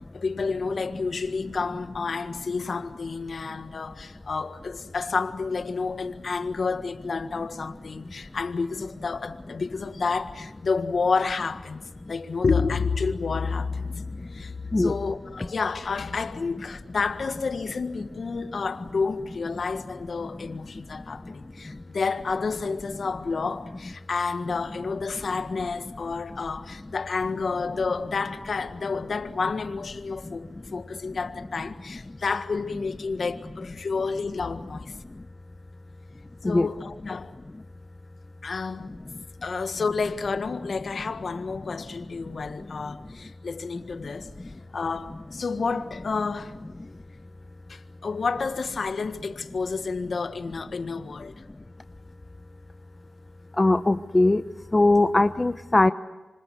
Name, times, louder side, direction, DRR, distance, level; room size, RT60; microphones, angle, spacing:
voice 1, 0.0-11.8 12.1-14.0 14.3-35.0 36.4-37.4 38.4-38.9 39.4-46.5 47.7-51.4, left 4 dB, 65° left, 1.7 m, -30 dB
voice 2, 53.6-54.4 54.7-55.9, left 2 dB, 30° left, 0.8 m, -20 dB
27.0 x 26.0 x 8.0 m
cardioid pair, 55°, 0 cm